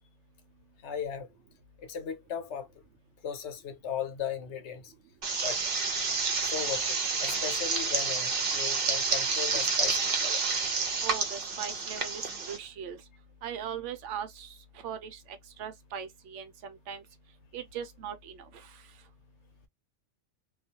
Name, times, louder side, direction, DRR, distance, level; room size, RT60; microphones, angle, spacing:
voice 1, 0.8-1.3 1.8-2.7 3.2-4.9 5.4-5.6 6.4-10.4, left 8 dB, 70° left, 0.9 m, -37 dB
sound 1, 5.2-12.6, right 4 dB, 55° right, 0.8 m, -29 dB
voice 2, 11.0-13.1 13.4-17.0 17.5-19.0, right 8 dB, 85° right, 0.9 m, -40 dB
2.4 x 2.2 x 2.7 m
omnidirectional pair, 1.2 m